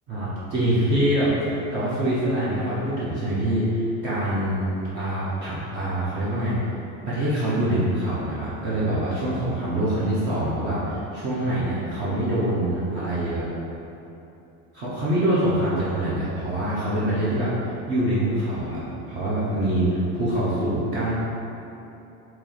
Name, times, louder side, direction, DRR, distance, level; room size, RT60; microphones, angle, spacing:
voice 1, 0.1-4.6 4.9-6.6 7.1-13.5 14.7-21.1, right 1 dB, 35° right, -9 dB, 0.6 m, -25 dB
3.1 x 2.9 x 3.9 m, 2.9 s
cardioid pair, 165°, 33 cm